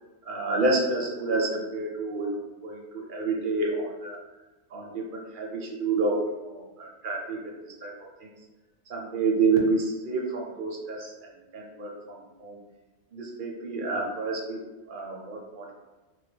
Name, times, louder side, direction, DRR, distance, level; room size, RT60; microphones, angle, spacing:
voice 1, 0.2-4.2 4.7-7.9 8.2-8.3 8.9-11.1 11.5-12.6 13.1-14.6 14.9-15.7, right 3 dB, 55° right, -1 dB, 0.7 m, -29 dB
3.1 x 2.2 x 3.2 m, 1.2 s
omnidirectional pair, 1.2 m